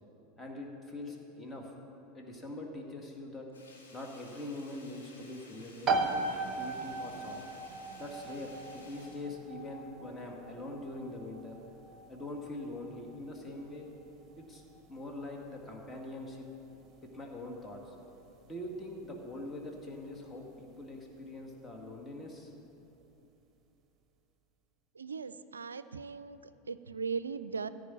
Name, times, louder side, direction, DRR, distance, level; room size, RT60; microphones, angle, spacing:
voice 1, 0.4-1.7 2.1-3.5 3.9-5.9 6.3-7.4 8.0-11.5 12.1-13.9 14.4-14.6 14.9-16.5 17.0-18.0 18.4-22.5, left 1 dB, 15° left, 0 dB, 1.9 m, -43 dB
Sink (filling or washing), 3.5-10.0 10.4-10.5, left 3 dB, 80° left, 2.5 m, -57 dB
sound 1, 5.8-20.3, right 3 dB, 30° right, 1.0 m, -39 dB
voice 2, 24.9-26.4 26.7-27.7, right 5 dB, 80° right, 14 dB, 0.4 m, -38 dB
14.5 x 5.3 x 9.5 m, 2.9 s
figure-of-eight pair, 80°, 0 cm